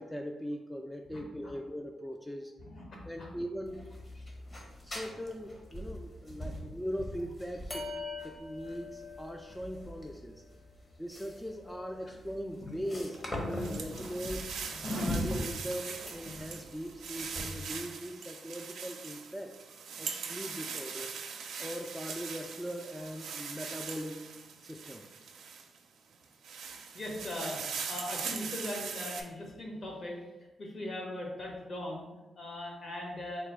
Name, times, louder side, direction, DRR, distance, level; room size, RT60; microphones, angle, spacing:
voice 1, 0.0-2.5 3.0-3.9 4.8-10.4 11.0-14.6 15.0-19.5 20.0-21.2 21.6-24.3 24.6-25.1, equal, 5° left, 3 dB, 0.3 m, -40 dB
voice 2, 2.6-3.3 4.1-4.2 6.4-6.6 13.6-14.1 26.9-27.6 27.9-30.2 30.6-33.5, left 1 dB, 55° left, -1 dB, 1.2 m, -40 dB
sound 1, 3.7-17.8, left 1 dB, 30° left, 0.9 m, -41 dB
sound 2, 12.9-25.8 26.2-29.2, right 6 dB, 85° right, 0.4 m, -41 dB
4.0 x 2.1 x 4.5 m, 1.1 s
cardioid pair, 75°, 0 cm